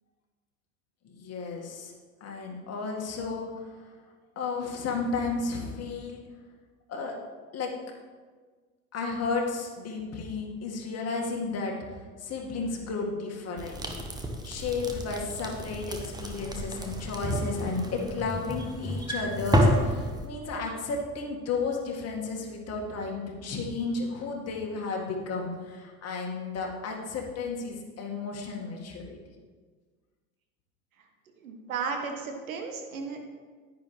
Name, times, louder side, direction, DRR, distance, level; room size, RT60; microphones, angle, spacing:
voice 1, 1.0-1.9 2.2-3.5 4.4-6.2 6.9-7.2 7.5-7.8 8.9-14.1 14.4-29.2, left 4 dB, 35° left, 0 dB, 2.0 m, -33 dB
sound 1, 13.6-20.3, equal, 10° right, 1.2 m, -30 dB
voice 2, 31.4-33.2, right 5 dB, 70° right, 3 dB, 1.5 m, -34 dB
10.5 x 9.5 x 3.3 m, 1.5 s
figure-of-eight pair, 70°, 43 cm